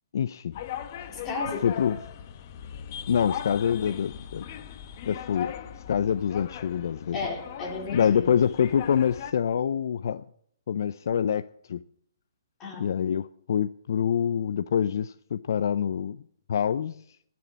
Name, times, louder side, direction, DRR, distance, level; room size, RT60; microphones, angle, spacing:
voice 1, 0.1-0.6 1.6-2.0 3.1-4.4 5.1-5.5 5.9-7.2 7.9-10.2 10.7-11.8 12.8-16.2 16.5-17.0, left 8 dB, 60° left, 13 dB, 0.5 m, -26 dB
sound 1, 0.5-9.3, left 9 dB, 40° left, 1.1 m, -39 dB
voice 2, 1.1-1.7 7.1-8.3 12.6-12.8, left 3 dB, 15° left, -1 dB, 4.0 m, -34 dB
19.0 x 7.0 x 7.3 m, 0.64 s
hypercardioid pair, 155°, 2 cm